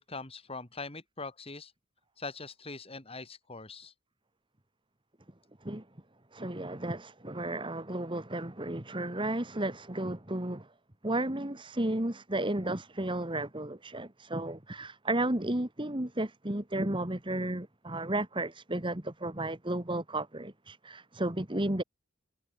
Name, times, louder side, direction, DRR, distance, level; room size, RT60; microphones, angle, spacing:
voice 1, 0.0-1.7 2.2-3.9, left 3 dB, 25° left, 3.1 m, -42 dB
voice 2, 6.3-10.7 11.0-21.8, right 1 dB, 25° right, 1.8 m, -33 dB
head